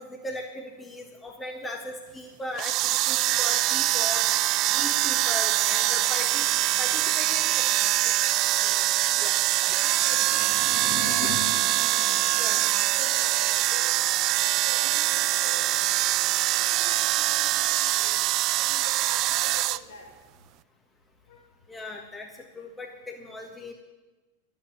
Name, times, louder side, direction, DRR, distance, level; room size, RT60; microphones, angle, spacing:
voice 1, 0.0-4.2 4.7-6.5 6.8-7.7 8.0-8.1 9.2-9.8 12.3-12.6 21.7-23.7, left 1 dB, 10° left, 2 dB, 1.5 m, -38 dB
sound 1, 2.5-19.8, right 16 dB, 40° right, 0.4 m, -24 dB
voice 2, 3.4-3.7 8.2-9.0 9.7-14.0 14.6-15.7 16.6-18.3 18.6-20.1 21.3-22.0, left 4 dB, 60° left, 0 dB, 5.0 m, -45 dB
sound 2, 10.0-13.1, left 6 dB, 35° left, 1.9 m, -39 dB
12.0 x 9.0 x 9.4 m, 1.2 s
figure-of-eight pair, 90°, 0 cm